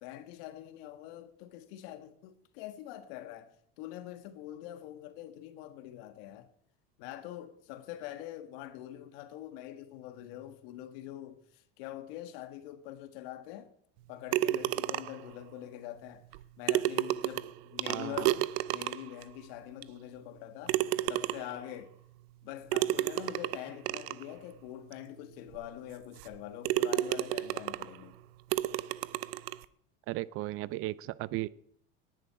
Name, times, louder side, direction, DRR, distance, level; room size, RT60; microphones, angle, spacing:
voice 1, 0.0-6.5 7.0-13.7 14.1-16.3 16.6-18.4 18.7-20.8 21.1-21.9 22.4-28.2, left 13 dB, 75° left, 1.6 m, -44 dB
sound 1, 14.3-15.3 16.3-16.4 16.7-19.2 19.8-19.9 20.7-21.6 22.7-24.2 24.9-25.0 25.5-25.6 26.2-26.4 26.6-28.0 28.5-29.6, right 16 dB, 90° right, 0.7 m, -31 dB
voice 2, 17.9-18.3 30.1-31.5, right 18 dB, 50° right, 0.6 m, -36 dB
18.0 x 11.0 x 4.7 m
cardioid pair, 155°, 29 cm